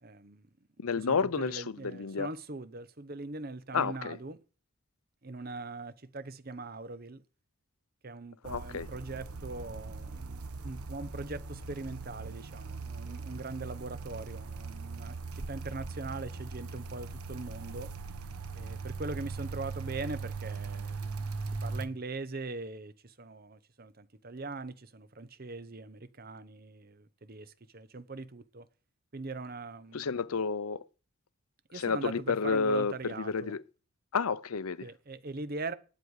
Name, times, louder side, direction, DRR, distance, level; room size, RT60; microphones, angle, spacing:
voice 1, 0.0-0.5 0.9-4.4 5.2-7.2 8.0-17.9 18.5-28.7 29.1-30.1 31.7-33.6 34.8-35.7, right 3 dB, 40° right, 0.9 m, -41 dB
voice 2, 0.8-2.3 3.7-4.2 8.4-8.9 29.9-30.8 31.7-33.6 34.1-34.9, left 5 dB, 80° left, 0.6 m, -30 dB
sound 1, 8.4-21.9, right 4 dB, 85° right, 1.1 m, -40 dB
19.0 x 9.1 x 4.9 m
head